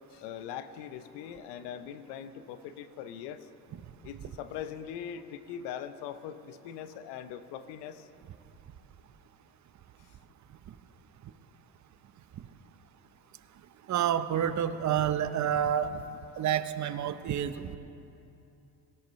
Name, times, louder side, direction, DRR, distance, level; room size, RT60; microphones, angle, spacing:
voice 1, 0.1-3.5 4.0-8.1, left 9 dB, 85° left, 11 dB, 0.8 m, -41 dB
voice 2, 13.9-16.0 16.4-17.8, right 9 dB, 45° right, 12 dB, 0.8 m, -29 dB
19.0 x 17.5 x 3.2 m, 2.8 s
supercardioid pair, 80°, 40 cm